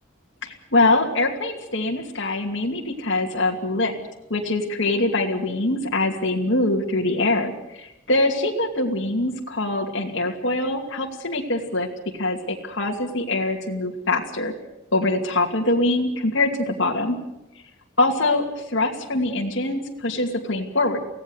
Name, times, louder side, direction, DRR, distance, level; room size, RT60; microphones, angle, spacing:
voice 1, 0.4-4.0 4.3-11.9 12.2-14.5 14.9-17.2 18.0-21.0, left 2 dB, 65° left, 0 dB, 2.7 m, -23 dB
24.5 x 17.0 x 8.1 m, 0.90 s
head